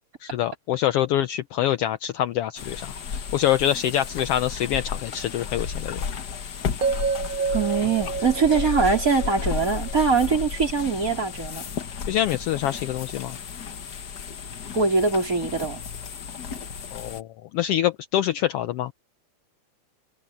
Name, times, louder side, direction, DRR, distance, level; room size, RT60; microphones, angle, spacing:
voice 1, 0.2-6.0 12.1-13.4 16.9-18.9, left 11 dB, 85° left, 1.3 m, -25 dB
sound 1, 2.6-17.2, left 6 dB, 55° left, 1.1 m, -33 dB
sound 2, 6.8-10.9, right 5 dB, 80° right, 0.7 m, -30 dB
voice 2, 7.5-11.6 14.7-15.8, right 4 dB, 25° right, 4.3 m, -22 dB
omnidirectional pair, 3.4 m